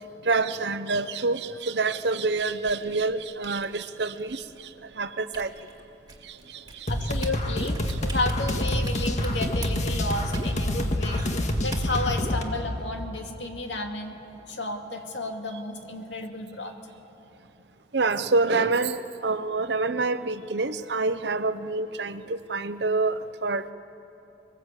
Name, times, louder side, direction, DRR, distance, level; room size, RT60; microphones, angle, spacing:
voice 1, 0.2-4.4 5.0-5.5 6.3-6.9 17.9-23.6, right 3 dB, 65° right, 12 dB, 0.8 m, -27 dB
sound 1, 2.4-12.6, right 2 dB, 25° right, 2.1 m, -43 dB
voice 2, 6.9-14.2 14.5-16.7, left 2 dB, 85° left, 3 dB, 2.5 m, -32 dB
sound 2, 6.9-12.4, left 1 dB, 40° left, 1.8 m, -27 dB
25.0 x 21.5 x 8.3 m, 3.0 s
head